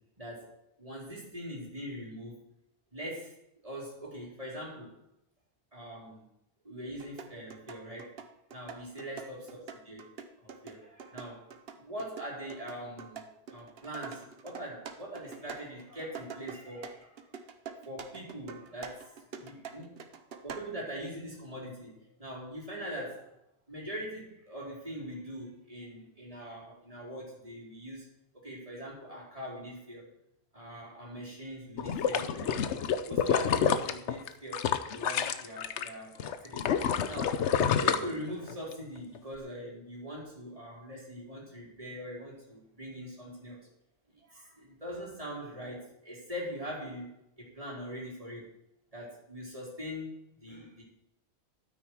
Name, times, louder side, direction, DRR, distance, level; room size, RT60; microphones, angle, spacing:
voice 1, 0.2-2.4 2.9-3.3 3.6-5.0 5.7-6.3 6.6-8.2 8.5-10.1 10.4-17.3 17.8-20.0 20.4-23.3 23.7-28.1 28.4-30.1 30.5-37.4 37.8-43.6 44.1-48.5 48.9-50.1 50.4-50.8, equal, 30° right, -5 dB, 4.3 m, -42 dB
sound 1, 7.0-20.8, right 6 dB, 60° right, 1.1 m, -45 dB
sound 2, 31.8-35.9 36.2-38.7 39.2-39.3, left 8 dB, 85° left, 1.0 m, -28 dB
12.5 x 9.1 x 4.7 m, 0.80 s
omnidirectional pair, 1.1 m